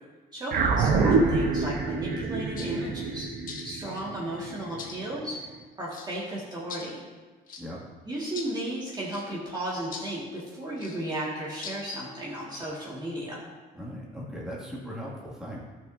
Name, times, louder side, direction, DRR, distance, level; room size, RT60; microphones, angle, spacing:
voice 1, 0.3-3.3 3.6-5.4 5.8-7.0 8.1-13.4, right 1 dB, 25° right, -6 dB, 1.9 m, -34 dB
sound 1, 0.5-5.1, right 4 dB, 60° right, 1.0 m, -26 dB
sound 2, 2.6-2.7 3.5-4.0 4.8-5.0 5.9-6.1 6.7-6.9 7.5-7.6 8.4-8.5 9.1-9.3 9.9-10.1 10.8-11.0 11.6-11.8, left 5 dB, 55° left, 1.4 m, -40 dB
voice 2, 13.7-15.6, equal, 5° right, -6 dB, 2.2 m, -38 dB
12.5 x 6.4 x 2.7 m, 1.3 s
cardioid pair, 110°, 17 cm